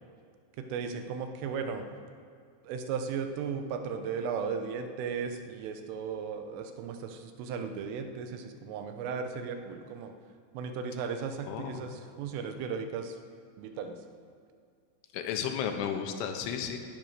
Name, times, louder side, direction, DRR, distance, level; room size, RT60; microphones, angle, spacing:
voice 1, 0.6-1.9 2.7-10.1 10.6-13.1 13.6-14.0, right 6 dB, 85° right, 7 dB, 3.6 m, -36 dB
voice 2, 11.5-11.8 15.1-16.8, left 8 dB, 85° left, 5 dB, 3.6 m, -33 dB
19.5 x 11.0 x 6.5 m, 2.1 s
omnidirectional pair, 5.6 m